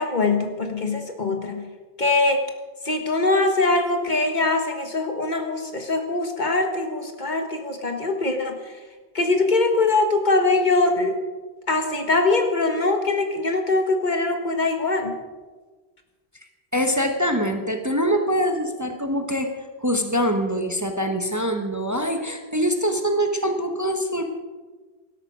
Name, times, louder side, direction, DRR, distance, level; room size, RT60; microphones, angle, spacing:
voice 1, 0.0-1.6 2.0-2.4 2.8-8.7 9.1-11.2 11.7-15.2, left 3 dB, 45° left, 5 dB, 1.5 m, -22 dB
voice 2, 16.7-19.5 19.8-24.2, equal, 20° right, 4 dB, 1.1 m, -24 dB
17.0 x 12.5 x 5.0 m, 1.3 s
omnidirectional pair, 1.0 m